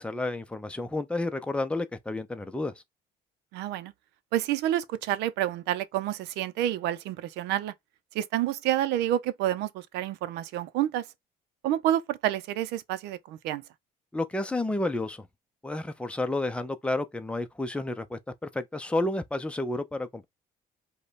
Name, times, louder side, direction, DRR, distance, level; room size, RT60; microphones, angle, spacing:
voice 1, 0.0-2.7 14.1-15.3 15.6-20.3, left 2 dB, 5° left, 0.6 m, -31 dB
voice 2, 3.5-3.9 4.3-7.7 8.1-11.1 11.6-13.6, right 12 dB, 90° right, 0.6 m, -29 dB
5.2 x 2.3 x 4.0 m
cardioid pair, 110°, 17 cm